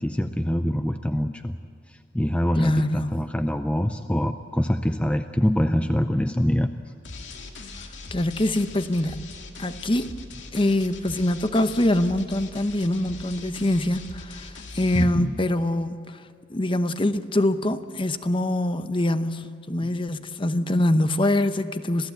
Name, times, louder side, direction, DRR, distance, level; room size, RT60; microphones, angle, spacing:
voice 1, 0.0-1.6 1.9-6.9 14.9-15.4 19.8-19.9, equal, 5° left, 0.5 m, -25 dB
voice 2, 2.5-3.2 7.8-9.3 9.6-10.1 10.5-16.2 16.5-22.1, left 1 dB, 30° left, 0.8 m, -24 dB
sound 1, 7.0-15.0, left 3 dB, 80° left, 2.3 m, -41 dB
26.5 x 16.5 x 8.3 m
head